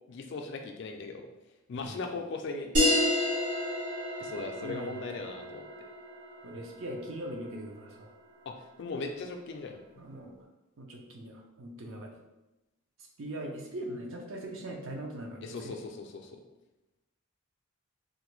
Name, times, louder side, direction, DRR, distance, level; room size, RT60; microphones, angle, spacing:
voice 1, 0.1-1.3 1.7-2.7 4.2-5.6 8.5-9.8 15.4-16.4, left 3 dB, 55° left, 4 dB, 0.3 m, -38 dB
sound 1, 2.7-7.8, left 1 dB, 90° right, 1.4 m, -30 dB
voice 2, 4.3-5.0 6.4-8.1 10.0-10.3 10.8-12.1 13.2-15.7, right 1 dB, 65° right, 1 dB, 0.6 m, -41 dB
3.6 x 2.2 x 3.1 m, 0.98 s
head